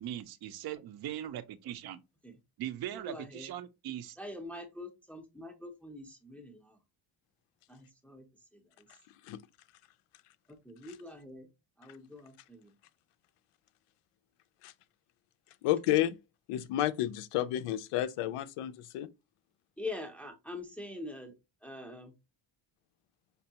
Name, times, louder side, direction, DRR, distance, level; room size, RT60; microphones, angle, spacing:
voice 1, 0.0-2.0 2.6-4.2, right 11 dB, 50° right, 0.5 m, -40 dB
voice 2, 2.9-3.5 4.2-6.8 7.7-8.2 8.5-8.6 10.5-11.5 11.8-12.7 19.8-21.3 21.6-22.1, left 2 dB, 5° left, 0.5 m, -44 dB
voice 3, 15.6-16.2 16.5-19.1, left 13 dB, 90° left, 0.6 m, -31 dB
5.3 x 2.2 x 2.7 m
cardioid pair, 165°, 50 cm